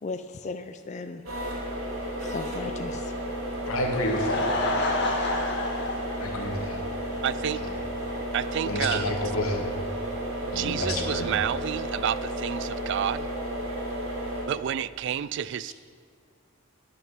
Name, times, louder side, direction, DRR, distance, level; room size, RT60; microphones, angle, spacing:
voice 1, 0.0-1.2 2.2-3.2 5.0-5.2, left 3 dB, 35° left, 8 dB, 0.4 m, -36 dB
sound 1, 1.3-14.5, right 1 dB, 85° right, 3.1 m, -33 dB
voice 2, 3.6-4.5 6.2-6.8 8.7-9.7 10.5-11.3, left 1 dB, 85° left, 1 dB, 2.0 m, -29 dB
Laughter / Crowd, 3.8-7.2 7.5-7.6 8.1-8.2 8.4-8.5, left 2 dB, 55° left, 1.6 m, -29 dB
voice 3, 7.2-7.6 8.3-9.1 10.4-13.3 14.5-15.7, right 9 dB, 60° right, 18 dB, 0.3 m, -30 dB
12.0 x 6.3 x 7.4 m, 2.2 s
head